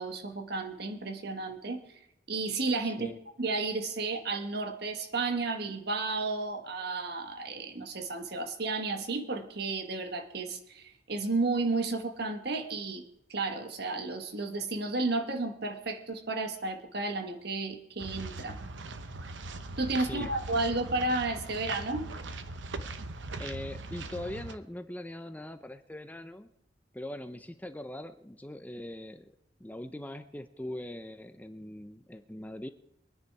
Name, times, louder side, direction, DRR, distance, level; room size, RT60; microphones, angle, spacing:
voice 1, 0.0-1.8 2.3-13.0 13.3-18.6 19.8-22.1, right 3 dB, 60° right, 6 dB, 1.5 m, -32 dB
voice 2, 2.8-3.2 20.0-20.3 23.4-26.5 26.9-29.3 29.6-32.7, left 1 dB, 10° left, 9 dB, 0.6 m, -41 dB
sound 1, 18.0-24.6, right 2 dB, 85° right, 0.9 m, -40 dB
22.5 x 9.9 x 4.8 m, 0.81 s
head